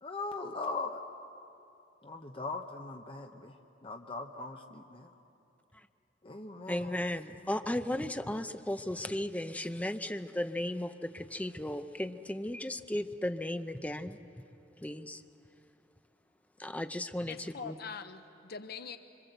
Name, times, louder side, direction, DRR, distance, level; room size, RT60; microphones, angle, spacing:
voice 1, 0.0-1.0 2.0-5.1 6.2-7.0 7.3-7.7, left 3 dB, 30° left, 3 dB, 0.9 m, -40 dB
voice 2, 6.7-14.2 14.8-15.2 16.6-17.8, left 1 dB, 10° left, 9 dB, 0.6 m, -35 dB
voice 3, 17.3-19.0, left 6 dB, 55° left, 9 dB, 0.8 m, -43 dB
25.5 x 25.5 x 8.0 m, 2.8 s
head